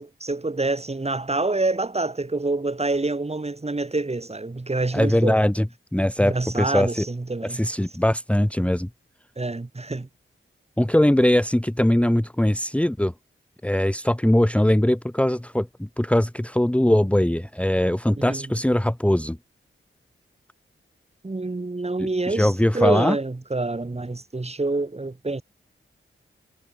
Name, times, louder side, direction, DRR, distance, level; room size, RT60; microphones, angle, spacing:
voice 1, 0.0-5.4 6.2-7.6 9.4-10.1 18.2-18.5 21.2-25.4, right 2 dB, 30° right, 6.2 m, -27 dB
voice 2, 4.9-5.7 5.9-7.1 7.5-8.9 10.8-13.1 13.6-19.4 22.0-23.2, left 1 dB, 5° left, 1.7 m, -21 dB
wide cardioid pair, 90°, 21 cm